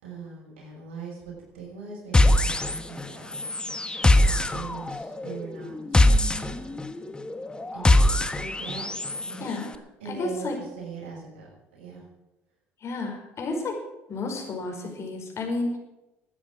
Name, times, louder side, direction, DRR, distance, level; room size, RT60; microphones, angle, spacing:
voice 1, 0.0-3.3 4.2-6.8 7.7-8.9 9.2-9.7 10.0-12.1, right 4 dB, 90° right, -1 dB, 6.3 m, -41 dB
sound 1, 2.1-3.1 3.3-9.3, left 1 dB, 15° left, 1.4 m, -22 dB
voice 2, 9.4-9.7 10.1-10.6 12.8-13.8 14.1-15.8, left 2 dB, 45° left, 2 dB, 5.3 m, -31 dB
13.0 x 9.7 x 8.8 m, 0.97 s
hypercardioid pair, 70°, 6 cm